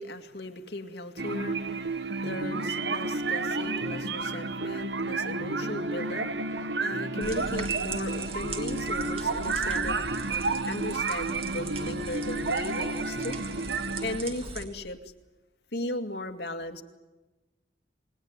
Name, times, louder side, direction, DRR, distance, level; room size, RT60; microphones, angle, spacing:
voice 1, 0.0-10.1 10.7-13.4 14.0-15.1 15.7-16.8, left 1 dB, 70° left, 7 dB, 2.3 m, -37 dB
sound 1, 1.2-14.2, right 3 dB, 85° right, 1.2 m, -31 dB
sound 2, 7.2-14.6, right 3 dB, 35° right, 3.0 m, -40 dB
28.0 x 21.5 x 9.7 m, 1.1 s
head